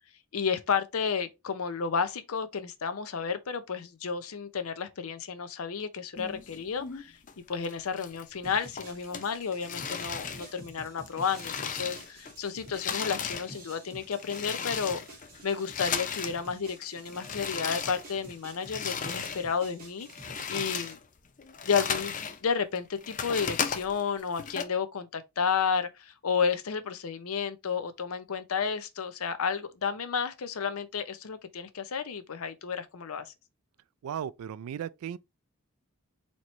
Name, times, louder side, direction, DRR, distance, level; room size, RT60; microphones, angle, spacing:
voice 1, 0.3-7.2 7.5-15.0 15.4-21.0 21.6-22.2 22.4-33.3, left 6 dB, 85° left, 0.6 m, -32 dB
sound 1, 6.2-7.3 7.6-8.4 8.8-12.3 12.6-16.4 16.7-19.5 19.8-22.4 22.8-24.6, left 7 dB, 35° left, 0.5 m, -36 dB
sound 2, 8.4-20.9, right 1 dB, 40° right, 2.0 m, -49 dB
voice 2, 34.0-35.2, right 9 dB, 85° right, 0.3 m, -36 dB
4.2 x 3.0 x 3.1 m
head